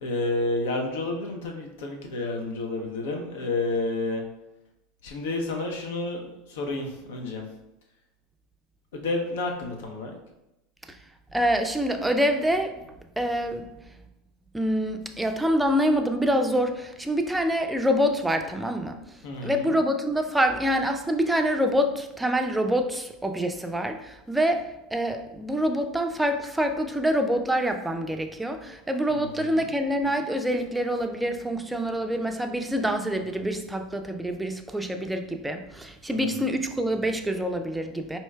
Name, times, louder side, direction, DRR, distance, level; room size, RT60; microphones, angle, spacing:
voice 1, 0.0-4.2 5.0-7.4 8.9-10.2 19.2-19.7 29.1-29.6 36.1-36.5, left 2 dB, 75° left, 2 dB, 0.6 m, -30 dB
voice 2, 11.3-12.8 13.2-13.7 14.5-19.0 19.4-24.7 24.9-38.2, equal, 10° right, 6 dB, 0.4 m, -26 dB
4.3 x 2.7 x 2.2 m, 0.92 s
hypercardioid pair, 80°, 0 cm